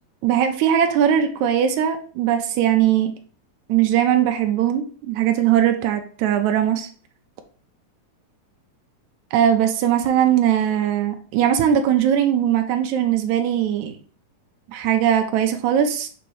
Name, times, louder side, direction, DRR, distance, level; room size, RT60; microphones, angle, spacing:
voice 1, 0.2-3.1 3.7-6.9 9.3-14.0 14.7-16.1, right 10 dB, 80° right, 5 dB, 1.7 m, -20 dB
7.0 x 3.0 x 4.6 m, 0.43 s
omnidirectional pair, 4.1 m